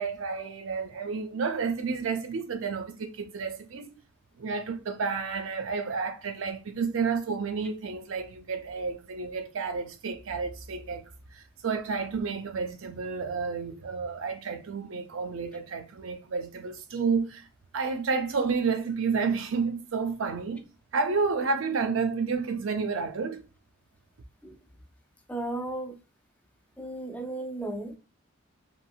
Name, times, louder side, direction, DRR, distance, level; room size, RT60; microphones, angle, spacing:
voice 1, 0.0-3.9 4.4-11.0 11.3-17.5 17.7-20.6 20.9-23.4, right 5 dB, 75° right, 0.5 m, -30 dB
voice 2, 25.3-25.9 26.8-27.9, right 2 dB, 5° left, 0.3 m, -34 dB
2.9 x 2.7 x 2.4 m
head